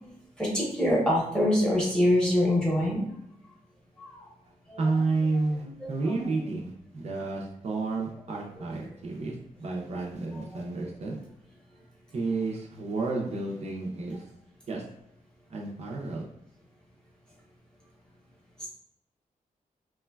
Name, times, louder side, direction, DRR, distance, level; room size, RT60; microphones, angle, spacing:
voice 1, 0.4-3.1 4.0-4.2 4.7-4.8 5.8-5.9 10.3-10.4 18.6-18.7, left 1 dB, 5° left, -4 dB, 0.7 m, -25 dB
voice 2, 4.8-11.2 12.1-14.3 14.7-14.8 15.5-16.3, right 3 dB, 50° right, -2 dB, 0.4 m, -31 dB
3.0 x 2.2 x 2.2 m, 0.79 s
wide cardioid pair, 160°, 14 cm